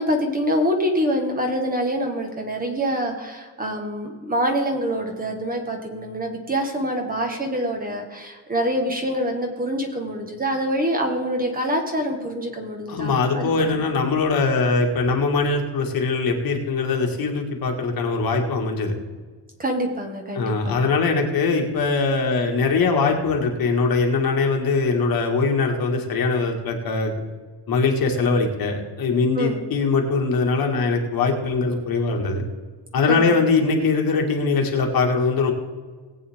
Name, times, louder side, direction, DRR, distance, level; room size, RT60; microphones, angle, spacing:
voice 1, 0.0-13.5 19.6-20.8 29.3-29.6 33.1-33.3, equal, 20° right, 3 dB, 1.3 m, -25 dB
voice 2, 12.9-18.9 20.4-27.1 27.7-32.4 32.9-35.5, left 4 dB, 50° left, 2 dB, 1.8 m, -21 dB
19.0 x 8.6 x 3.6 m, 1.4 s
cardioid pair, 175°, 44 cm